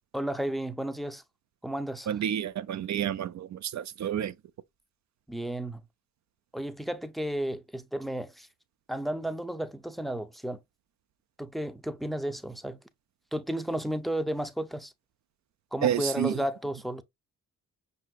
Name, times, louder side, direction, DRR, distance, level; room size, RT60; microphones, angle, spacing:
voice 1, 0.1-1.2 1.6-2.1 5.3-5.8 6.5-8.5 8.9-10.6 11.4-12.8 13.3-14.9 15.7-17.0, right 1 dB, ahead, 0.5 m, -33 dB
voice 2, 2.1-4.3 15.8-16.3, right 10 dB, 50° right, 0.4 m, -29 dB
5.5 x 2.7 x 2.3 m
supercardioid pair, 45°, 38 cm